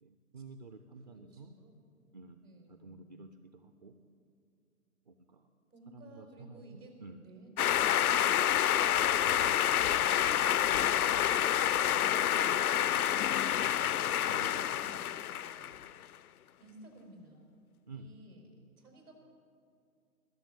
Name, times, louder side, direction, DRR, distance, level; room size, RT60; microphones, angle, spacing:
voice 1, 0.0-1.5 2.1-2.4 2.7-3.9 5.1-5.5 5.9-7.2 14.3-14.7 17.9-18.1, right 3 dB, 30° right, 8 dB, 0.5 m, -50 dB
voice 2, 1.1-1.8 2.4-3.3 5.7-6.9 7.2-8.1 8.5-11.3 11.9-15.8 16.6-17.4 17.9-19.1, right 2 dB, 85° right, 1 dB, 4.9 m, -55 dB
sound 1, 7.6-15.9, left 10 dB, 75° left, 0.5 m, -28 dB
21.0 x 7.0 x 9.2 m, 2.4 s
figure-of-eight pair, 135°, 44 cm